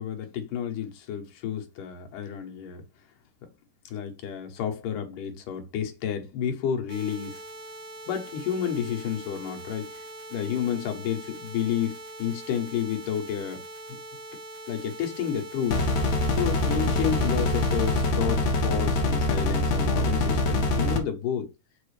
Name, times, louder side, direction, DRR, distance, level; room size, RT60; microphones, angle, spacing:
voice 1, 0.0-2.8 3.4-3.5 3.9-7.4 8.1-10.0 10.3-13.6 13.9-14.0 14.7-15.8 16.4-21.5, left 8 dB, 90° left, 2.7 m, -31 dB
sound 1, 6.9-18.0, right 1 dB, 70° right, 2.9 m, -42 dB
sound 2, 15.7-21.0, left 2 dB, 65° left, 2.2 m, -24 dB
5.9 x 5.0 x 3.2 m
omnidirectional pair, 3.6 m